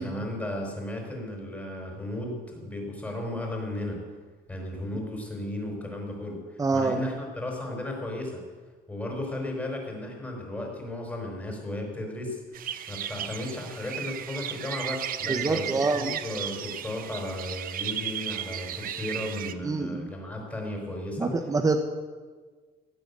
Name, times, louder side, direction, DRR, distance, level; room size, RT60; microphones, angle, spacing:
voice 1, 0.0-4.0 4.5-6.4 6.7-8.4 8.9-12.4 12.9-21.4, left 1 dB, 10° left, -1 dB, 4.4 m, -35 dB
voice 2, 6.6-7.0 15.3-16.2 19.6-20.1 21.2-21.8, right 3 dB, 20° right, 5 dB, 1.1 m, -26 dB
sound 1, 12.5-19.5, right 10 dB, 55° right, 0.9 m, -35 dB
16.5 x 9.1 x 8.2 m, 1.4 s
cardioid pair, 110°, 17 cm